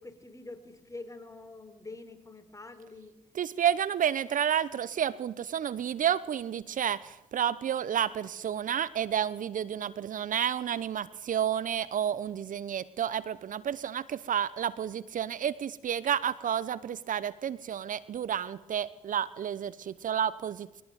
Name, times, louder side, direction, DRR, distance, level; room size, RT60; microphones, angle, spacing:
voice 1, 0.0-3.2, left 2 dB, 20° left, 4.8 m, -46 dB
voice 2, 3.3-20.8, right 9 dB, 55° right, 1.0 m, -30 dB
22.5 x 18.5 x 9.3 m
hypercardioid pair, 50°, 16 cm